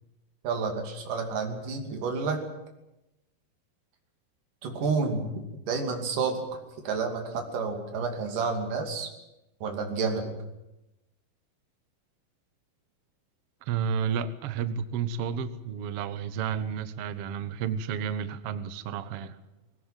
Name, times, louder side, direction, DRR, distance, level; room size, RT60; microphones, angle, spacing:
voice 1, 0.4-2.4 4.6-5.3 5.7-6.4 6.8-9.1 9.6-10.4, right 4 dB, 60° right, 3 dB, 4.2 m, -30 dB
voice 2, 13.7-19.4, right 7 dB, 90° right, 12 dB, 1.3 m, -31 dB
20.0 x 18.0 x 9.0 m, 0.95 s
omnidirectional pair, 4.4 m